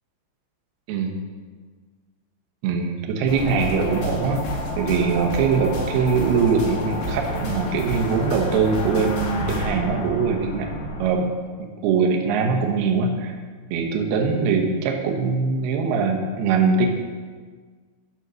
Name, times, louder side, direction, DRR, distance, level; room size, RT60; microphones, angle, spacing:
voice 1, 2.6-4.5 4.8-10.7 11.0-13.3 13.7-16.9, right 5 dB, 75° right, 2 dB, 2.7 m, -22 dB
sound 1, 3.3-11.1, left 1 dB, 75° left, 3.6 m, -29 dB
12.0 x 4.4 x 6.2 m, 1.5 s
omnidirectional pair, 5.1 m